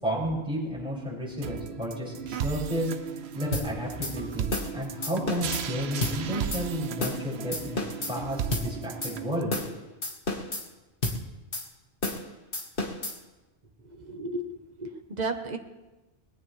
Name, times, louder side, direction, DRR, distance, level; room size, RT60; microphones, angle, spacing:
voice 1, 0.0-2.9 3.3-7.8 8.1-9.5, equal, 5° right, -5 dB, 6.5 m, -32 dB
sound 1, 1.4-9.4, right 7 dB, 75° right, 1.0 m, -36 dB
sound 2, 3.5-3.7 4.0-4.1 4.5-4.7 5.0-5.6 6.0-6.2 6.5-6.6 7.0-7.2 7.5-8.1 8.5-8.7 9.0-9.1 9.5-9.7 10.0-10.6 11.0-11.2 11.5-11.7 12.0-12.2 12.5-13.2, left 2 dB, 55° left, 1.9 m, -30 dB
voice 2, 13.8-14.5 14.8-15.6, right 2 dB, 40° right, 6 dB, 1.3 m, -33 dB
21.0 x 17.0 x 3.4 m, 1.1 s
omnidirectional pair, 1.1 m